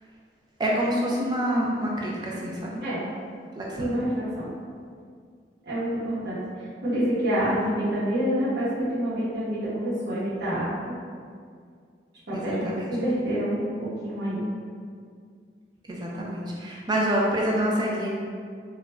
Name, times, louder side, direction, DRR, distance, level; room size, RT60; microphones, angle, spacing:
voice 1, 0.6-2.8 3.6-3.9 12.3-12.8 13.3-13.4 15.9-18.1, equal, 25° right, -3 dB, 0.4 m, -27 dB
voice 2, 3.7-4.4 5.6-10.7 12.3-14.5, equal, 65° right, -10 dB, 1.0 m, -27 dB
2.4 x 2.1 x 3.1 m, 2.1 s
head